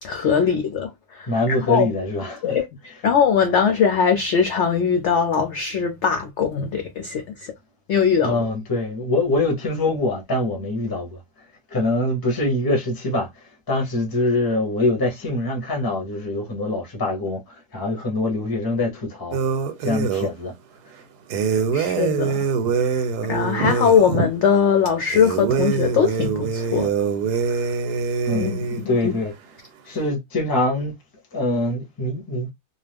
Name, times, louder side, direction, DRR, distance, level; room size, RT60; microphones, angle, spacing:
voice 1, 0.0-1.9 2.4-7.5 7.9-8.4 21.7-22.4 22.9-26.9 27.5-27.7 28.3-29.1, left 7 dB, 65° left, 0.7 m, -21 dB
voice 2, 1.3-2.6 2.9-3.0 8.2-11.2 11.7-13.3 13.7-17.4 17.7-19.4 19.8-20.5 28.3-29.3 29.9-30.9 31.3-32.5, left 2 dB, 20° left, 0.7 m, -24 dB
sound 1, 19.3-20.3 21.3-24.3 25.1-28.8, right 5 dB, 90° right, 1.2 m, -24 dB
2.6 x 2.4 x 3.3 m
omnidirectional pair, 1.7 m